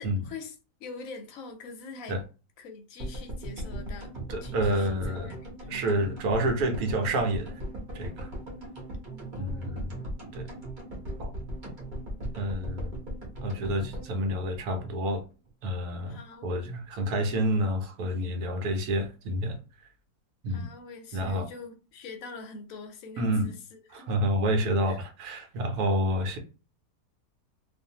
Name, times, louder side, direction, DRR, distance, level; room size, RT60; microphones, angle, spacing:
voice 1, 0.0-2.2 2.6-4.1 4.4-5.8 9.1-10.0 16.1-16.6 20.5-24.2 24.8-25.0, left 4 dB, 65° left, 0.9 m, -44 dB
sound 1, 3.0-15.2 15.5-15.6 15.7-15.8, right 1 dB, 35° right, 1.0 m, -38 dB
voice 2, 4.3-5.3 5.7-7.6 7.9-8.3 9.3-10.1 10.3-10.5 11.2-11.3 12.3-12.9 13.4-15.2 15.6-19.6 20.4-20.7 21.1-21.5 23.2-23.5 23.9-26.4, right 1 dB, 70° right, 1.2 m, -29 dB
2.6 x 2.4 x 2.7 m
omnidirectional pair, 1.8 m